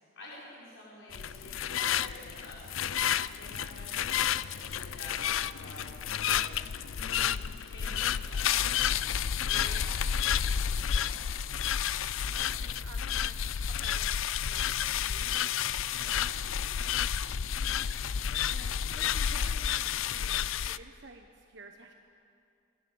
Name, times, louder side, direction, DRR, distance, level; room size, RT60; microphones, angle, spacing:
voice 1, 0.1-6.6 6.9-7.4 7.6-8.7 9.5-11.3 16.4-17.0, left 1 dB, 65° left, -6 dB, 5.2 m, -49 dB
sound 1, 1.1-20.8, left 8 dB, 80° left, 0.5 m, -31 dB
voice 2, 12.2-13.3 13.8-14.2 14.4-16.7 18.5-21.9, right 3 dB, 60° right, 3 dB, 1.3 m, -52 dB
26.5 x 21.0 x 7.2 m, 2.6 s
head